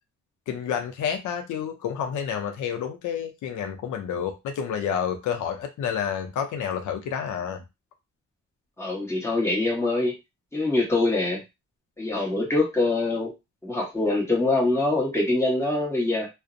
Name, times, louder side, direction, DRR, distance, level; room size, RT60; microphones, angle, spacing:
voice 1, 0.5-7.6, left 8 dB, 85° left, 0.5 m, -29 dB
voice 2, 8.8-10.1 10.5-11.4 12.0-13.3 13.6-16.3, left 2 dB, 10° left, 1.1 m, -24 dB
2.4 x 2.0 x 2.5 m
cardioid pair, 95°, 30 cm